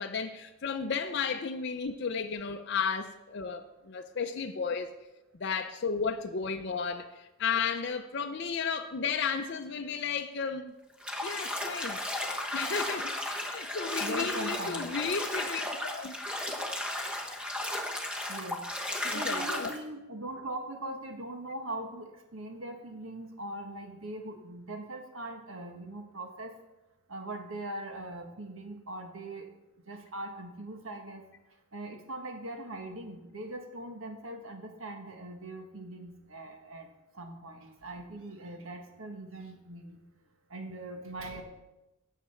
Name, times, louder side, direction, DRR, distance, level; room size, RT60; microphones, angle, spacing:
voice 1, 0.0-4.9 5.4-10.7 11.2-16.1 19.1-19.7, left 5 dB, 55° left, 0.5 m, -33 dB
Bathtub (filling or washing), 11.0-19.8, left 1 dB, 5° right, 0.9 m, -34 dB
voice 2, 14.0-14.9 18.3-18.6 19.0-26.5 27.1-29.5 29.9-31.2 31.7-36.9 37.1-40.0 40.5-41.4, right 1 dB, 75° right, 1.5 m, -41 dB
9.9 x 7.5 x 5.7 m
head